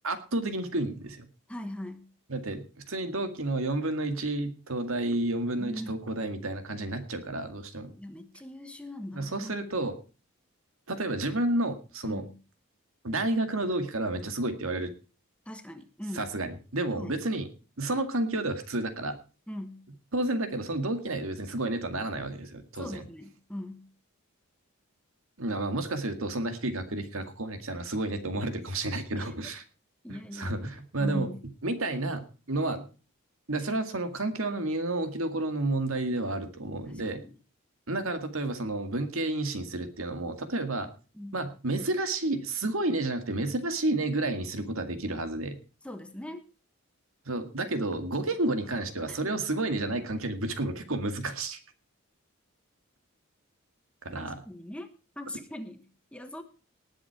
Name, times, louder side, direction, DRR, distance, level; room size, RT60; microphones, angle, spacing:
voice 1, 0.0-1.3 2.3-7.9 9.1-10.0 10.9-12.2 13.0-14.9 16.1-17.5 17.8-19.2 20.1-23.0 25.4-29.6 30.1-31.3 31.6-32.8 33.5-37.2 37.9-40.9 41.3-45.6 47.3-51.6 54.0-54.4, right 2 dB, 75° right, 8 dB, 2.0 m, -31 dB
voice 2, 1.5-2.1 5.6-6.0 7.9-9.5 12.0-12.3 15.5-16.3 16.9-17.2 19.5-19.8 22.8-23.9 29.2-29.3 30.0-30.6 31.0-31.4 36.9-37.3 41.1-41.4 45.8-46.4 49.1-49.2 54.1-54.9 55.2-56.4, left 1 dB, 5° left, 8 dB, 1.2 m, -40 dB
19.0 x 7.8 x 4.7 m, 0.35 s
head